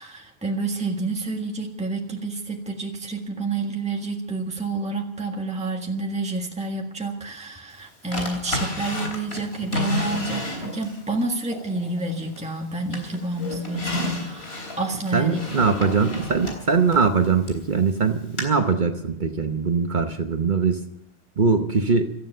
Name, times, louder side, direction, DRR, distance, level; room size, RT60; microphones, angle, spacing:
voice 1, 0.0-15.4, right 3 dB, 5° right, 1 dB, 1.6 m, -29 dB
Drawer open or close, 8.1-11.0 11.5-12.6 12.9-17.6 18.4-18.5, left 2 dB, 90° left, 3.9 m, -31 dB
voice 2, 15.1-20.8 21.4-22.1, right 5 dB, 50° right, 6 dB, 1.1 m, -21 dB
17.0 x 13.5 x 5.6 m, 0.81 s
omnidirectional pair, 1.0 m